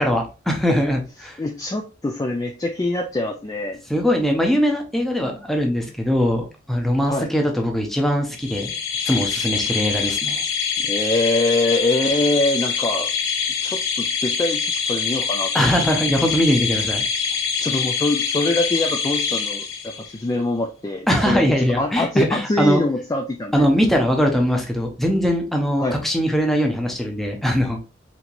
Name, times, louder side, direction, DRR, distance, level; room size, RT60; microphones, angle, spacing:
voice 1, 0.0-1.4 3.9-8.7 9.1-10.4 15.5-17.0 21.1-22.8 23.5-27.8, equal, ahead, 2 dB, 0.7 m, -21 dB
voice 2, 1.4-3.8 7.0-7.3 10.8-13.1 13.6-16.0 17.6-21.4 21.8-23.6 25.8-26.0, left 2 dB, 20° left, 3 dB, 0.3 m, -24 dB
sound 1, 8.4-20.2, left 6 dB, 75° left, 0.9 m, -25 dB
4.3 x 2.9 x 2.5 m, 0.32 s
head